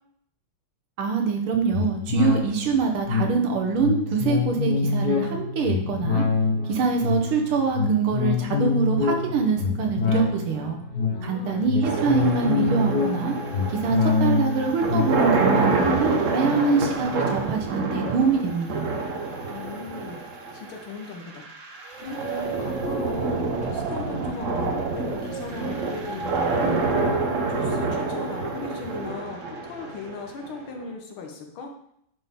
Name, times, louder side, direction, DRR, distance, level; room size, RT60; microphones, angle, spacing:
voice 1, 1.0-6.2 6.6-10.8 11.2-13.3 13.7-18.9, right 5 dB, 85° right, 2 dB, 1.9 m, -24 dB
sound 1, 1.7-17.5 17.9-18.0, left 4 dB, 60° left, 1.3 m, -26 dB
voice 2, 11.1-12.4 19.5-20.2 20.5-27.0 27.3-31.7, left 3 dB, 80° left, 3 dB, 1.9 m, -38 dB
sound 2, 11.8-30.9, right 3 dB, 55° right, 0.9 m, -27 dB
9.5 x 4.2 x 3.6 m, 0.72 s
omnidirectional pair, 2.3 m